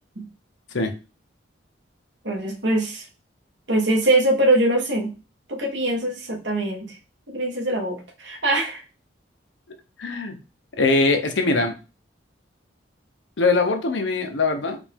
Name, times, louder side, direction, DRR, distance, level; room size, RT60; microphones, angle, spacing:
voice 1, 2.2-3.1 3.7-5.1 5.5-7.0 7.3-8.8, right 1 dB, 65° right, 0 dB, 1.5 m, -22 dB
voice 2, 10.0-10.4 10.8-11.7 13.4-14.8, left 3 dB, 70° left, 5 dB, 0.8 m, -21 dB
5.1 x 2.6 x 3.5 m, 0.31 s
head